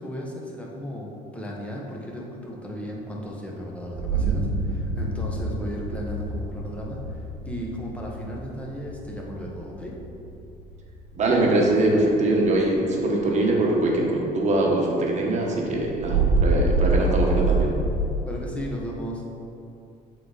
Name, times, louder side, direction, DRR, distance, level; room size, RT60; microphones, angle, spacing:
voice 1, 0.0-9.9 18.3-19.2, equal, 5° left, -3 dB, 1.1 m, -35 dB
sound 1, 3.9-12.8 13.2-13.6 13.9-14.0 14.4-14.5 15.5-18.0, right 3 dB, 80° right, 0.6 m, -27 dB
voice 2, 11.2-17.8, right 2 dB, 45° right, -1 dB, 1.2 m, -22 dB
7.5 x 4.0 x 4.1 m, 2.6 s
cardioid pair, 110°, 17 cm